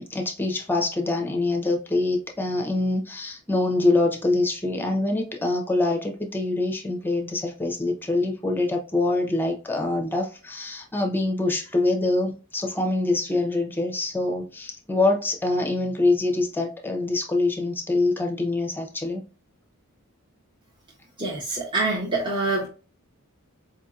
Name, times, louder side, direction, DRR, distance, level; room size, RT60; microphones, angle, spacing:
voice 1, 0.0-19.2, left 2 dB, 10° left, 0.6 m, -25 dB
voice 2, 21.2-22.7, right 2 dB, 25° right, 0.8 m, -25 dB
4.6 x 2.7 x 2.4 m
head